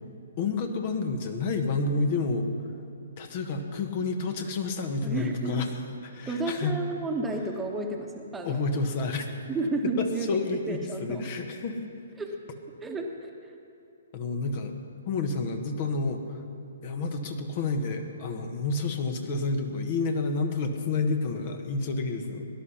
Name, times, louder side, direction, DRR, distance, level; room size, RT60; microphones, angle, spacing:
voice 1, 0.4-2.5 3.2-5.7 6.1-6.8 8.4-9.3 10.0-11.9 14.1-14.7 15.0-16.4 16.8-22.4, left 3 dB, 45° left, 5 dB, 1.5 m, -29 dB
voice 2, 5.0-5.7 6.3-8.6 9.5-10.4 10.7-11.3 12.2-12.4 12.8-13.5, right 2 dB, 10° right, 2 dB, 1.3 m, -31 dB
18.5 x 11.5 x 5.8 m, 2.7 s
figure-of-eight pair, 125°, 0 cm